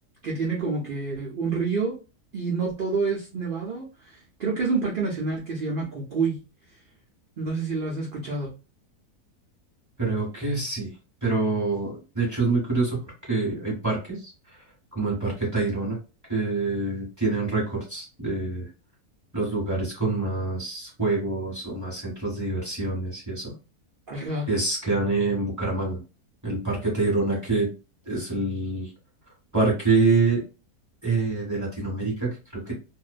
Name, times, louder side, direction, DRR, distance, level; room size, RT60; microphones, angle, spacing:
voice 1, 0.2-1.9 2.3-6.4 7.4-8.5 24.1-24.5, right 4 dB, 85° right, -2 dB, 0.4 m, -28 dB
voice 2, 10.0-10.9 11.2-13.0 13.3-14.3 14.6-14.7 14.9-16.0 16.3-18.7 19.3-23.5 24.5-26.0 26.4-27.7 28.1-28.9 29.5-30.4 31.0-32.7, right 3 dB, 15° right, -4 dB, 1.0 m, -26 dB
2.5 x 2.1 x 2.4 m, 0.31 s
omnidirectional pair, 1.7 m